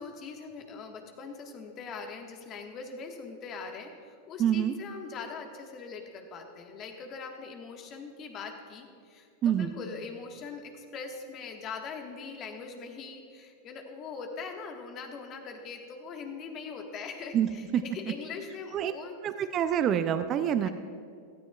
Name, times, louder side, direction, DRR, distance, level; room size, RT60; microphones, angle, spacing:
voice 1, 0.0-19.2 20.6-20.7, left 5 dB, 40° left, 3 dB, 1.6 m, -41 dB
voice 2, 4.4-4.7 9.4-9.7 17.3-17.8 18.7-18.9 19.2-20.7, right 9 dB, 40° right, 10 dB, 0.5 m, -26 dB
16.5 x 13.0 x 2.4 m, 2.3 s
hypercardioid pair, 95°, 0 cm